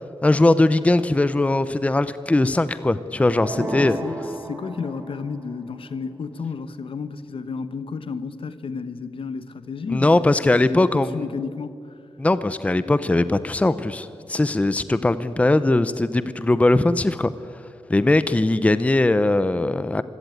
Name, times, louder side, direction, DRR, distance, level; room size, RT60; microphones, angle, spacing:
voice 1, 0.2-4.0 9.9-11.1 12.2-17.3 17.9-20.0, left 2 dB, 15° left, 0.6 m, -20 dB
sound 1, 3.4-5.4, right 2 dB, 25° right, 1.7 m, -33 dB
voice 2, 3.6-12.0, left 5 dB, 70° left, 1.2 m, -32 dB
25.5 x 16.5 x 9.2 m
wide cardioid pair, 180°, 9 cm